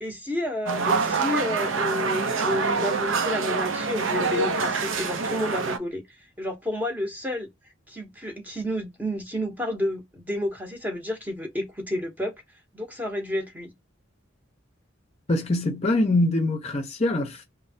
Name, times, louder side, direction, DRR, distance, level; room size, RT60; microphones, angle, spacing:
voice 1, 0.0-7.5 7.9-12.3 12.7-13.7, left 1 dB, 10° right, 0.8 m, -30 dB
sound 1, 0.7-5.8, right 4 dB, 70° right, 0.5 m, -26 dB
voice 2, 15.3-17.4, left 2 dB, 30° left, 0.6 m, -23 dB
3.1 x 2.1 x 2.7 m
head